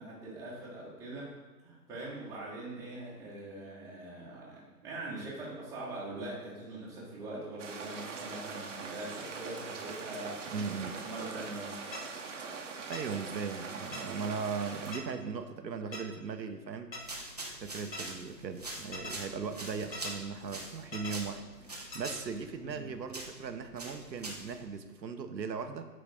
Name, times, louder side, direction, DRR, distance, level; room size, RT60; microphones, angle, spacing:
voice 1, 0.0-1.3 1.6-11.8 22.6-22.9, right 2 dB, 5° right, -7 dB, 1.1 m, -42 dB
sound 1, 7.6-15.0, right 4 dB, 45° right, 0.9 m, -42 dB
voice 2, 10.5-10.9 12.9-16.9 17.6-25.9, right 5 dB, 85° right, 7 dB, 0.8 m, -38 dB
sound 2, 11.9-12.0 12.9-13.0 13.9-14.0 14.9-15.0 15.9-16.0 16.9-17.0 17.9-18.0 18.9-19.1 19.9-20.1 20.9-21.1 21.9-22.1, left 2 dB, 80° left, 1.4 m, -40 dB
sound 3, 16.9-24.6, right 2 dB, 25° right, 0.4 m, -44 dB
8.6 x 4.0 x 3.4 m, 1.3 s
figure-of-eight pair, 135°, 50 cm